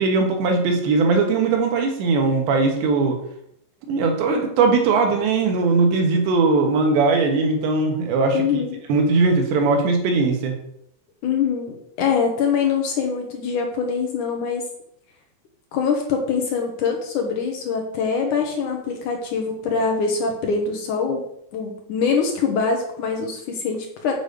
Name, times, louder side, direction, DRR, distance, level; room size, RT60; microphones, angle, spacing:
voice 1, 0.0-3.2 3.9-8.4 8.9-10.6, right 4 dB, 70° right, 3 dB, 3.5 m, -19 dB
voice 2, 8.3-8.8 11.2-14.7 15.7-21.2 21.5-24.1, left 5 dB, 80° left, 2 dB, 1.8 m, -23 dB
7.4 x 6.8 x 6.6 m, 0.75 s
omnidirectional pair, 5.5 m